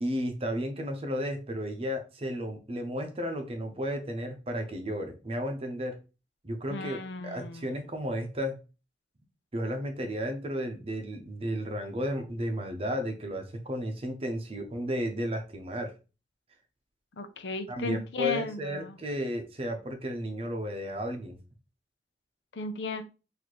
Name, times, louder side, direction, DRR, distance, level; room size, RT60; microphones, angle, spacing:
voice 1, 0.0-6.0 6.4-8.6 9.5-15.9 17.7-21.4, equal, 35° right, 5 dB, 0.7 m, -33 dB
voice 2, 6.7-7.6 17.2-18.9 22.6-23.0, left 3 dB, 85° left, 8 dB, 0.6 m, -35 dB
4.1 x 2.7 x 3.1 m, 0.31 s
head